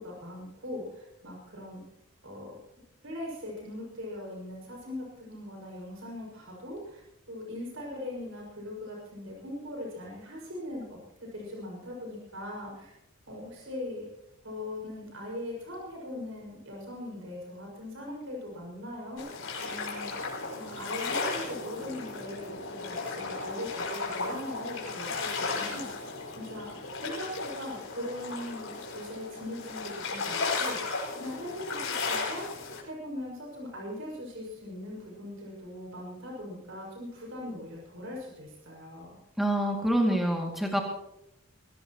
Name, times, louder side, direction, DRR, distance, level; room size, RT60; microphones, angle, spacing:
voice 1, 0.0-1.8 2.2-2.6 3.0-7.0 7.3-10.8 11.3-12.9 13.3-14.1 14.4-20.3 20.5-26.1 26.3-26.8 27.0-39.2, left 1 dB, 70° right, -2 dB, 5.9 m, -40 dB
sound 1, 19.2-32.8, left 4 dB, 75° left, 5.5 m, -35 dB
voice 2, 39.4-40.8, right 1 dB, ahead, -1 dB, 2.3 m, -26 dB
23.0 x 17.0 x 3.0 m, 0.84 s
head